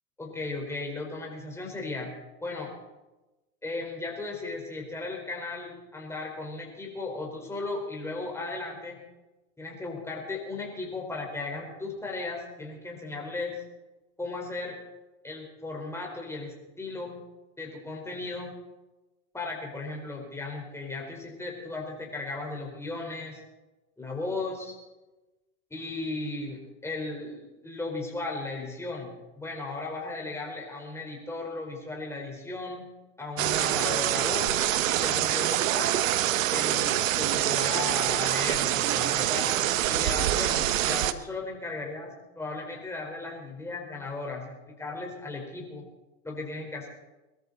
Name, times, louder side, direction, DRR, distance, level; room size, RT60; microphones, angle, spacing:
voice 1, 0.2-2.7 3.6-9.0 9.6-13.6 14.2-14.8 15.2-17.2 17.6-18.5 19.3-23.4 24.0-24.7 25.7-32.8 33.2-34.6 34.9-35.9 36.5-39.5 39.9-45.8 46.2-46.9, left 3 dB, 5° left, 0 dB, 4.5 m, -36 dB
sound 1, 33.4-41.1, right 13 dB, 65° right, 1.0 m, -25 dB
22.5 x 13.5 x 4.2 m, 1.1 s
hypercardioid pair, 120°, 42 cm